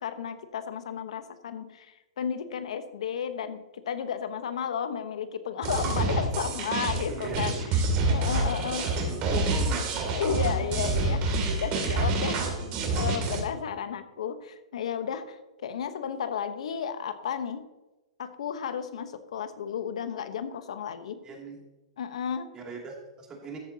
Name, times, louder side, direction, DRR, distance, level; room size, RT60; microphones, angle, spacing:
voice 1, 0.0-9.1 10.1-12.5 12.9-17.6 18.2-21.2 22.0-22.5, left 7 dB, 75° left, 10 dB, 1.0 m, -33 dB
sound 1, 5.6-13.4, right 2 dB, 40° right, 2.6 m, -27 dB
voice 2, 7.1-7.5 8.8-10.0 21.2-21.6 22.5-23.6, right 4 dB, 20° right, 0 dB, 2.6 m, -39 dB
13.5 x 8.3 x 2.8 m, 1.1 s
hypercardioid pair, 135°, 3 cm